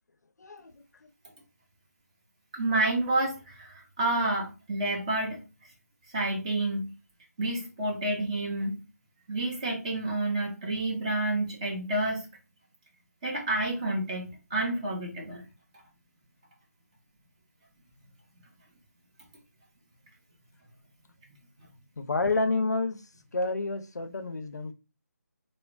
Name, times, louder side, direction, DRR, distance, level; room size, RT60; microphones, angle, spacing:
voice 1, 0.4-0.7 1.0-1.1 22.0-23.0 23.3-24.7, left 3 dB, 75° left, 0.5 m, -29 dB
voice 2, 2.5-5.4 6.1-6.9 7.4-8.8 9.3-12.3 13.2-15.4, right 2 dB, 25° right, 0.7 m, -29 dB
3.0 x 2.1 x 2.4 m
figure-of-eight pair, 160°, 9 cm